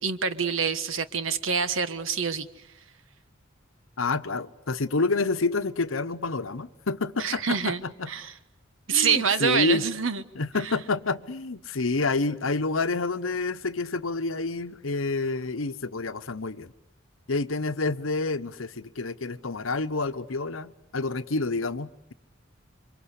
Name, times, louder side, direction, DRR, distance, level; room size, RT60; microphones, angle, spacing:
voice 1, 0.0-2.5 7.2-7.8 8.1-8.3 8.9-10.2 10.6-10.7, right 6 dB, 85° right, 1.5 m, -26 dB
voice 2, 4.0-8.1 8.9-9.8 10.4-16.7 17.3-22.1, left 3 dB, 90° left, 1.0 m, -28 dB
28.5 x 25.0 x 8.3 m
head